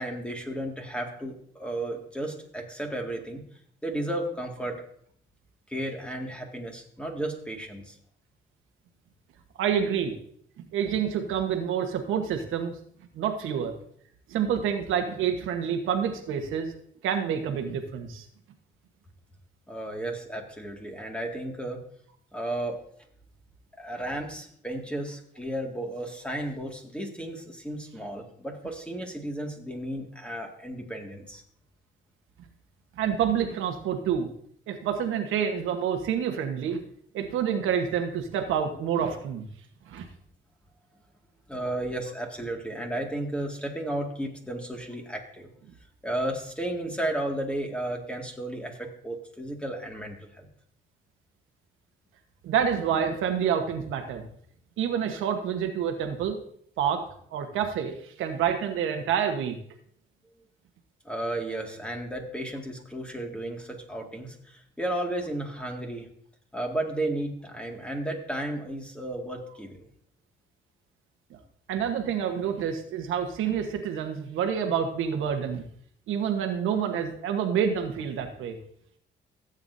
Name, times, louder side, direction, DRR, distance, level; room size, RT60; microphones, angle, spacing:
voice 1, 0.0-3.4 3.8-4.8 5.7-8.0 19.7-21.8 22.3-22.8 23.8-31.4 41.5-45.5 46.0-50.5 61.0-66.1 66.5-69.9, right 1 dB, 5° left, 2 dB, 2.1 m, -33 dB
voice 2, 9.6-10.1 10.7-12.7 13.1-13.7 14.3-16.7 17.0-18.2 33.0-34.3 34.7-36.8 37.1-39.4 39.9-40.0 52.4-54.3 54.8-56.4 56.8-57.0 57.3-59.6 71.7-75.6 76.1-78.6, right 8 dB, 90° right, 5 dB, 1.3 m, -28 dB
15.5 x 8.1 x 2.7 m, 0.64 s
cardioid pair, 90°, 20 cm